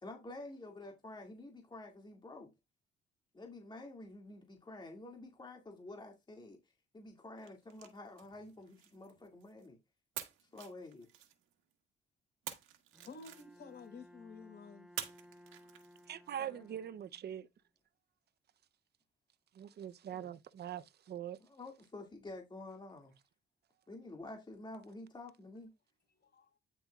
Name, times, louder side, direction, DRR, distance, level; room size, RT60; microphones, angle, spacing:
voice 1, 0.0-2.5 3.3-6.6 6.9-9.8 10.4-11.1 16.4-16.7 20.2-20.3 21.4-23.1 23.9-25.7, left 2 dB, 25° left, 2.3 m, -49 dB
sound 1, 7.4-9.7 10.1-11.7 12.4-13.9 14.9-16.3, right 11 dB, 90° right, 1.7 m, -48 dB
Bowed string instrument, 12.9-17.5, equal, 5° right, 1.2 m, -60 dB
voice 2, 13.0-14.9 26.2-26.6, left 4 dB, 55° left, 5.3 m, -52 dB
voice 3, 16.1-17.5 19.5-21.4, right 10 dB, 55° right, 0.7 m, -43 dB
9.9 x 6.9 x 2.4 m
cardioid pair, 90°, 20 cm